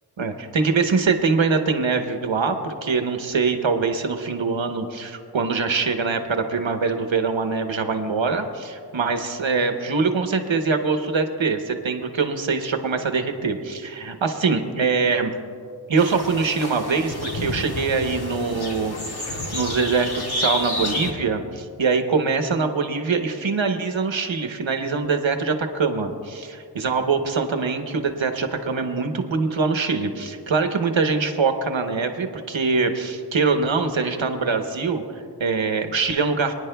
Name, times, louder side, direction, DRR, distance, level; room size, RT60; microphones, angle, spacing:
voice 1, 0.2-15.3 15.9-36.5, right 4 dB, 85° right, 6 dB, 1.0 m, -23 dB
sound 1, 16.0-21.1, left 1 dB, 55° left, 1.5 m, -30 dB
27.5 x 9.8 x 2.3 m, 2.3 s
wide cardioid pair, 55°, 45 cm